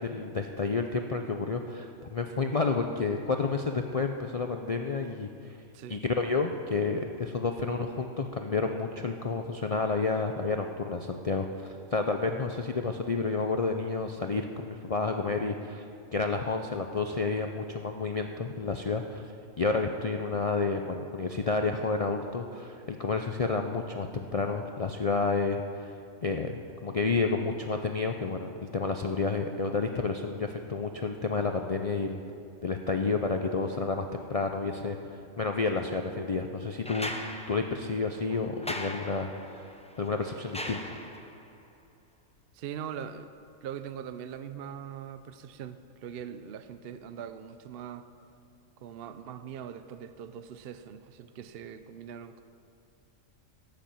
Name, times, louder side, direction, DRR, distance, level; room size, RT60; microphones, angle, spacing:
voice 1, 0.0-5.6 5.9-15.8 16.1-19.2 19.6-25.9 26.2-32.2 32.6-39.6 40.0-40.8, left 4 dB, 65° left, 4 dB, 0.3 m, -30 dB
sound 1, 36.8-41.5 43.0-43.1, left 1 dB, 10° left, 0.5 m, -40 dB
voice 2, 42.5-43.3 43.6-48.1 48.8-52.4, right 8 dB, 60° right, 11 dB, 0.6 m, -41 dB
17.0 x 6.8 x 7.5 m, 2.5 s
omnidirectional pair, 1.4 m